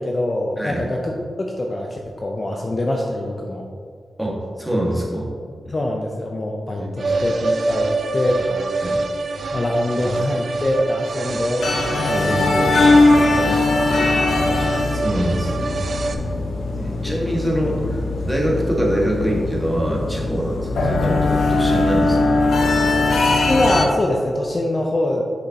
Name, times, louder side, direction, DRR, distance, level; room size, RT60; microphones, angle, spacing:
voice 1, 0.0-3.7 5.7-8.7 9.5-13.0 13.4-13.6 13.9-14.1 16.9-17.2 23.5-25.2, left 1 dB, 35° left, 0 dB, 0.7 m, -24 dB
voice 2, 0.6-0.9 4.2-5.3 6.8-7.3 8.8-9.0 12.1-13.0 14.4-14.5 14.9-16.0 16.8-22.2, right 1 dB, ahead, -3 dB, 1.7 m, -25 dB
sound 1, 7.0-16.1, right 3 dB, 70° right, 0.6 m, -25 dB
sound 2, 11.6-23.8, left 2 dB, 90° left, 0.8 m, -20 dB
7.8 x 6.4 x 2.9 m, 2.1 s
cardioid pair, 70°, 0 cm